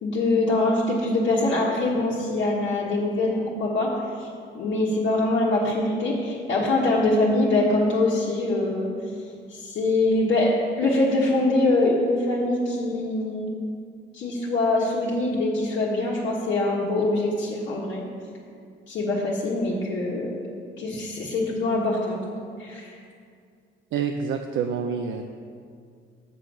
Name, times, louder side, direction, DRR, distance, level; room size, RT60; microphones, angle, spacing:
voice 1, 0.0-3.9 4.2-4.3 4.5-8.9 9.5-13.5 14.1-18.0 18.9-20.4 20.8-22.2 22.6-23.0, left 2 dB, 70° left, -6 dB, 1.3 m, -23 dB
voice 2, 23.9-25.2, right 6 dB, 80° right, 5 dB, 0.5 m, -27 dB
7.4 x 6.2 x 5.2 m, 2.2 s
cardioid pair, 90°, 20 cm